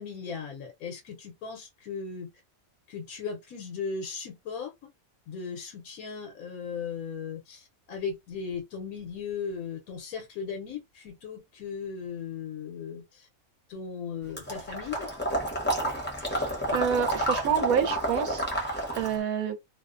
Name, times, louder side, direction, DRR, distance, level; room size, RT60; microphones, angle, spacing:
voice 1, 0.0-2.3 2.9-4.7 5.3-13.3 13.7-15.1, left 6 dB, 80° left, 1.1 m, -37 dB
Water / Liquid, 14.4-19.2, right 1 dB, 10° left, 0.6 m, -30 dB
voice 2, 16.7-18.7 18.9-19.6, right 8 dB, 85° right, 1.0 m, -28 dB
2.7 x 2.1 x 2.4 m
omnidirectional pair, 1.5 m